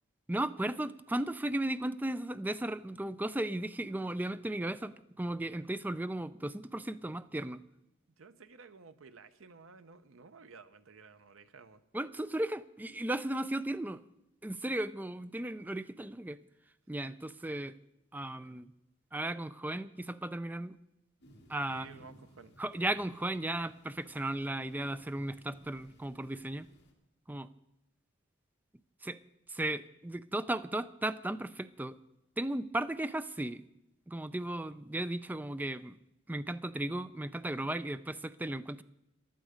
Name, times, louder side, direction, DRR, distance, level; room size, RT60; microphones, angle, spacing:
voice 1, 0.3-7.6 11.9-14.0 14.4-16.4 16.9-17.7 18.1-18.7 19.1-20.8 21.5-21.9 22.6-26.7 27.3-27.5 29.0-29.2 29.5-32.0 32.4-33.6 34.1-36.0 36.3-38.8, right 1 dB, 10° right, 13 dB, 0.4 m, -35 dB
voice 2, 8.2-11.8 21.7-22.5, right 4 dB, 75° right, 11 dB, 0.8 m, -54 dB
sound 1, 21.2-26.9, equal, 55° left, 2.6 m, -61 dB
14.5 x 11.5 x 5.1 m, 0.87 s
head